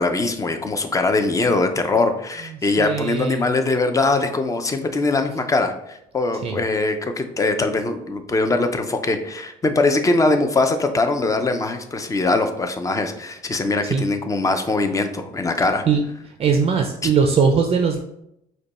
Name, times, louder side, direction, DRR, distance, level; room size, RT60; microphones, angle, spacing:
voice 1, 0.0-15.8 17.0-17.1, left 3 dB, 20° left, 7 dB, 0.5 m, -22 dB
voice 2, 2.8-3.5 6.4-6.6 13.9-14.0 15.9-16.0 16.4-18.0, right 5 dB, 35° right, 4 dB, 0.4 m, -20 dB
5.1 x 2.3 x 4.1 m, 0.80 s
cardioid pair, 110°, 17 cm